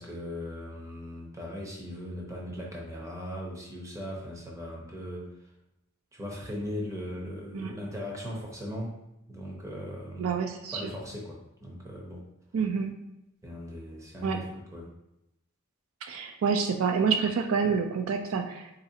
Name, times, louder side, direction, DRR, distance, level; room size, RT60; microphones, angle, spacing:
voice 1, 0.0-5.3 6.1-8.9 9.3-10.3 10.7-12.2 13.4-14.9, equal, 15° right, -2 dB, 0.6 m, -38 dB
voice 2, 10.2-10.9 12.5-13.0 14.2-14.4 16.0-18.7, right 5 dB, 70° right, 5 dB, 0.3 m, -28 dB
3.9 x 2.6 x 2.7 m, 0.89 s
head